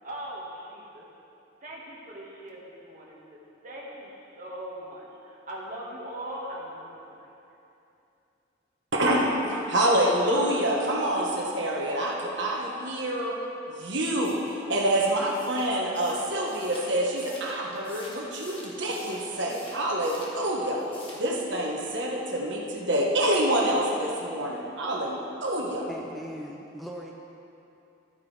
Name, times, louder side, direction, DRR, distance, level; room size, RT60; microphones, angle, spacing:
voice 1, 0.0-1.0 1.6-7.3, right 1 dB, 40° right, -4 dB, 1.8 m, -40 dB
voice 2, 8.9-13.4 13.7-20.8 21.1-25.9, right 1 dB, 70° right, -2 dB, 1.4 m, -27 dB
sound 1, 14.2-20.4 20.7-21.3, left 1 dB, 30° left, 1.4 m, -48 dB
voice 3, 25.9-27.1, equal, ahead, -1 dB, 0.5 m, -39 dB
13.0 x 9.5 x 3.4 m, 2.8 s
head